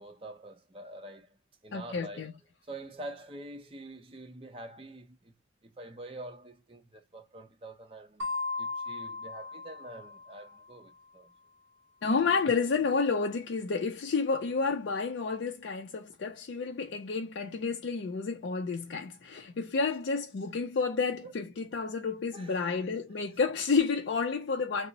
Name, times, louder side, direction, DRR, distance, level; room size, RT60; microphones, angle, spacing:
voice 1, 0.0-2.4 2.7-5.4 5.6-8.3 8.6-11.3 21.2-21.3 22.3-22.9, right 1 dB, 30° right, 0.6 m, -46 dB
voice 2, 1.7-2.3 12.0-24.9, left 4 dB, 65° left, 0.4 m, -30 dB
sound 1, 8.2-10.7, left 3 dB, 90° right, 0.7 m, -37 dB
2.6 x 2.0 x 3.8 m
head